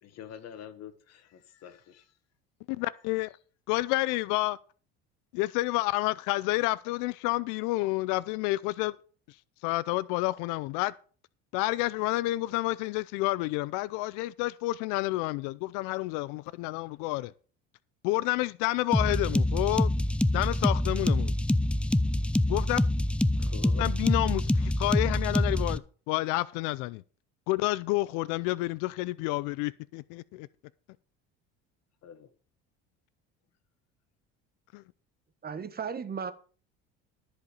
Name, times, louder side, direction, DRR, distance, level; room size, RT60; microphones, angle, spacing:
voice 1, 0.0-2.1 23.4-23.9 32.0-32.3, left 8 dB, 55° left, 1.7 m, -46 dB
voice 2, 2.7-3.3 3.7-4.6 5.3-9.0 9.3-9.4 9.6-10.9 11.5-17.3 18.0-19.9 20.3-21.3 22.5-22.8 23.8-27.0 27.5-30.5 34.7-34.8, left 19 dB, 75° left, 0.5 m, -29 dB
sound 1, 18.9-25.8, left 1 dB, 5° left, 0.5 m, -26 dB
voice 3, 35.4-36.3, right 6 dB, 30° right, 1.3 m, -35 dB
13.5 x 5.2 x 7.0 m
supercardioid pair, 95°, 31 cm